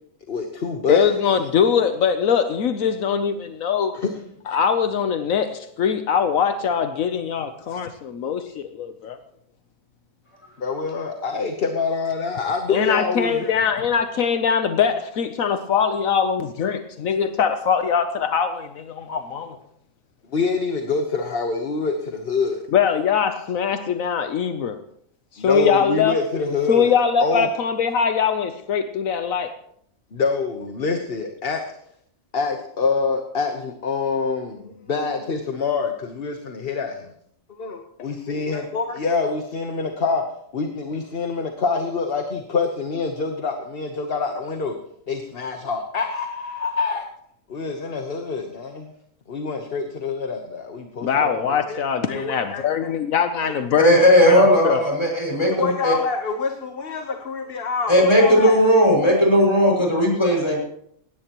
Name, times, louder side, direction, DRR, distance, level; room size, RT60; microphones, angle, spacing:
voice 1, 0.3-1.1 3.9-4.1 10.6-13.5 20.3-22.6 25.4-26.9 27.2-27.5 30.1-31.8 32.3-37.1 37.6-40.2 40.5-44.7 45.1-47.1 47.5-48.9 49.3-51.8 52.1-52.7 53.4-53.5 55.4-58.6, left 4 dB, 45° left, 4 dB, 1.3 m, -26 dB
voice 2, 0.9-3.9 4.5-9.2 12.7-19.6 22.7-24.8 25.3-26.2 26.7-29.5 51.0-54.8, left 7 dB, 75° left, 8 dB, 1.2 m, -22 dB
voice 3, 53.8-55.9 57.9-60.6, equal, 20° left, -1 dB, 6.2 m, -16 dB
20.0 x 17.0 x 3.0 m, 0.69 s
omnidirectional pair, 1.4 m